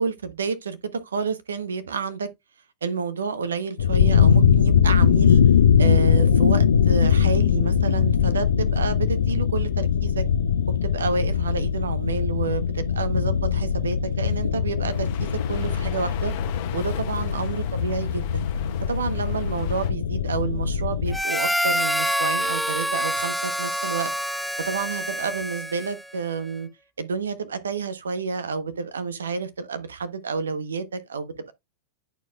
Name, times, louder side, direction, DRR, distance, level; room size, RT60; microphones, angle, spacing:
voice 1, 0.0-2.3 2.8-5.4 5.8-10.2 10.8-16.3 16.7-18.4 18.9-24.1 24.6-26.7 27.0-31.5, right 5 dB, 70° right, 0.9 m, -29 dB
sound 1, 3.8-21.2, left 7 dB, 70° left, 0.4 m, -21 dB
sound 2, 14.9-19.9, left 12 dB, 45° left, 1.0 m, -41 dB
Harmonica, 21.1-26.1, equal, ahead, 0.4 m, -26 dB
10.5 x 4.6 x 2.3 m
figure-of-eight pair, 90°, 0 cm